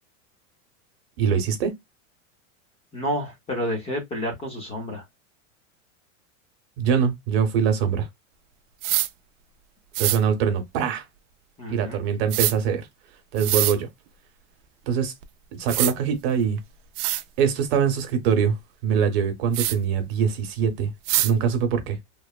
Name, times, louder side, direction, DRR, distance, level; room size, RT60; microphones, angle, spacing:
voice 1, 1.2-1.7 6.8-8.1 10.0-11.1 11.7-12.9 13.3-13.9 14.9-15.1 15.5-16.6 17.4-18.6 18.8-20.9 21.2-22.0, right 7 dB, 50° right, 0.9 m, -23 dB
voice 2, 2.9-5.0 11.6-12.0, equal, 15° left, 0.5 m, -30 dB
sound 1, 8.8-9.1 9.9-10.2 12.3-12.5 13.4-13.7 15.2-15.3 15.7-15.9 16.6-16.7 17.0-17.2 19.5-19.7 21.1-21.3, right 14 dB, 70° right, 0.5 m, -23 dB
3.0 x 2.0 x 2.2 m
supercardioid pair, 150°, 39 cm